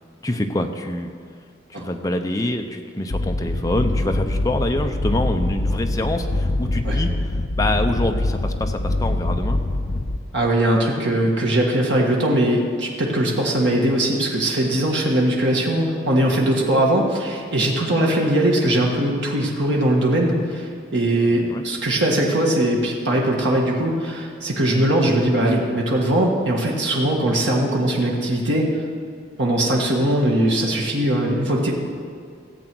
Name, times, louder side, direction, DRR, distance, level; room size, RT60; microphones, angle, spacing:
voice 1, 0.2-1.1 1.7-7.1 7.6-9.6 21.2-21.6, left 1 dB, 20° left, 5 dB, 0.7 m, -25 dB
sound 1, 3.1-10.2, left 2 dB, 55° left, 0.7 m, -24 dB
voice 2, 10.3-28.8 29.4-31.7, right 1 dB, 80° right, -2 dB, 1.6 m, -20 dB
14.5 x 7.9 x 6.2 m, 2.2 s
head